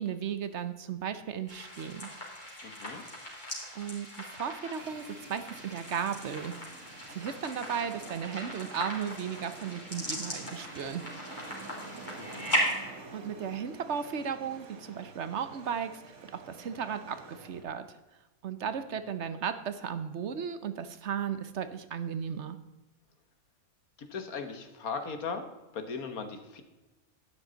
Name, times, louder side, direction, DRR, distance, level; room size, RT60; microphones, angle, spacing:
voice 1, 0.0-2.1 3.7-11.0 12.4-12.7 13.1-17.9 18.4-22.6, right 7 dB, 60° right, 11 dB, 1.0 m, -35 dB
sound 1, 1.5-12.7, equal, 30° left, 3.2 m, -38 dB
voice 2, 2.6-3.0 12.2-12.6 24.0-25.4 25.7-26.6, left 5 dB, 85° left, 8 dB, 1.7 m, -38 dB
sound 2, 4.8-17.6, right 3 dB, 80° right, 1.9 m, -49 dB
12.0 x 9.3 x 3.9 m, 1.1 s
omnidirectional pair, 1.5 m